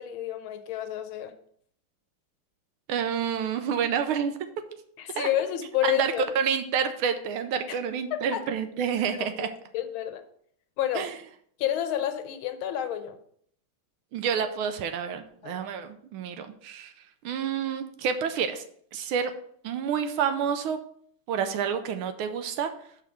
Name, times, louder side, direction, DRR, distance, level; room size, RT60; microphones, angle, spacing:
voice 1, 0.0-1.3 5.0-6.2 7.7-7.8 8.1-8.4 9.2-10.2 10.8-11.1 11.6-13.2 15.4-15.6, left 11 dB, 75° left, 8 dB, 1.5 m, -30 dB
voice 2, 2.9-4.4 5.1-5.3 5.8-9.5 10.9-11.1 14.1-16.9 17.2-18.6 18.9-19.3 19.6-20.8 21.3-22.7, right 7 dB, 85° right, 8 dB, 1.4 m, -28 dB
5.6 x 4.7 x 6.2 m, 0.65 s
omnidirectional pair, 2.3 m